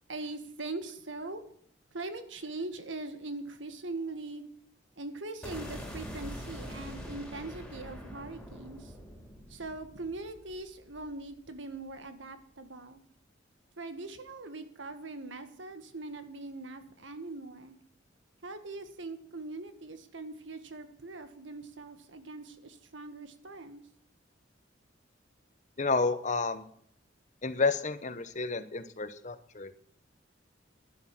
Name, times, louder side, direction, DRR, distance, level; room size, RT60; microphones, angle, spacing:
voice 1, 0.1-1.4 1.9-4.4 5.0-8.9 9.5-13.0 13.8-17.8 18.4-23.8, right 2 dB, 80° right, 9 dB, 1.7 m, -41 dB
sound 1, 5.4-11.5, equal, 5° left, 3.3 m, -44 dB
voice 2, 25.8-26.7 27.4-29.8, left 4 dB, 40° left, 12 dB, 1.0 m, -30 dB
11.5 x 10.5 x 6.0 m, 0.65 s
head